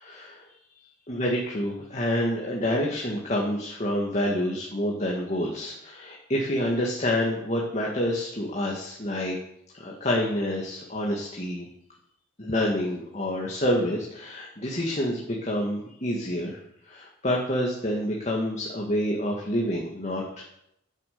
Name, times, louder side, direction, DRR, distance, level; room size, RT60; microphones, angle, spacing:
voice 1, 0.0-0.5 1.1-9.4 9.8-11.7 12.4-16.6 16.9-20.4, left 1 dB, 35° left, -2 dB, 2.0 m, -28 dB
12.0 x 10.0 x 6.8 m, 0.76 s
head